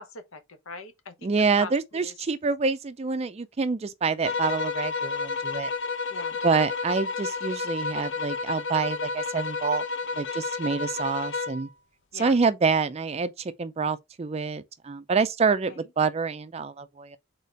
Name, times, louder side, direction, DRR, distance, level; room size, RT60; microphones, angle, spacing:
voice 1, 0.0-1.1 1.6-2.1 6.1-6.4 12.1-12.4 15.5-15.8, left 3 dB, 75° left, 0.9 m, -41 dB
voice 2, 1.2-5.7 6.4-9.8 10.2-11.7 12.1-17.2, right 5 dB, 30° right, 0.3 m, -27 dB
sound 1, 4.2-11.7, left 4 dB, 60° left, 0.5 m, -31 dB
4.1 x 3.7 x 3.3 m
head